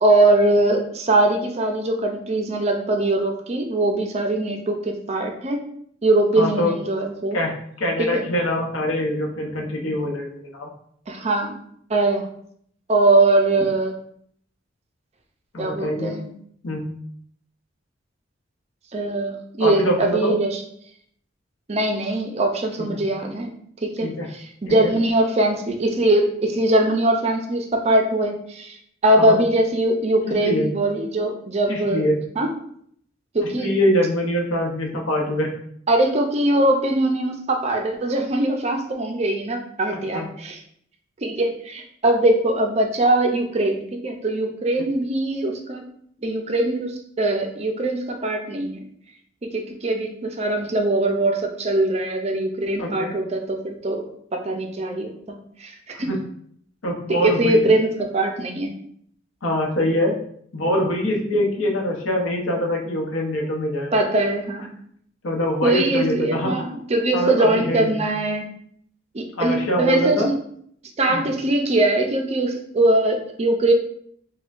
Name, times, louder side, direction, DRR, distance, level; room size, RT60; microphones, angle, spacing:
voice 1, 0.0-5.6 6.0-7.4 8.0-8.2 11.1-11.5 11.9-12.2 12.9-13.9 15.6-16.3 18.9-20.6 21.7-23.5 23.8-28.8 29.0-32.1 32.4-32.5 33.3-33.7 35.9-40.6 41.2-45.8 46.2-48.8 49.4-54.1 54.3-56.1 57.1-58.7 63.9-64.7 65.6-68.5 69.1-70.3 71.0-73.7, right 2 dB, 30° right, 4 dB, 0.4 m, -21 dB
voice 2, 6.3-6.8 7.3-10.7 15.5-16.2 16.6-16.9 19.6-20.3 22.8-23.0 24.0-24.3 24.7-24.9 29.2-29.4 30.4-30.7 31.7-32.2 33.4-35.5 40.1-40.3 52.8-53.2 55.9-56.2 56.8-57.7 59.4-60.2 60.5-63.9 65.2-66.6 67.1-68.0 69.4-70.3 71.1-71.2, left 1 dB, 90° left, 0 dB, 0.8 m, -24 dB
5.3 x 2.2 x 2.5 m, 0.65 s
head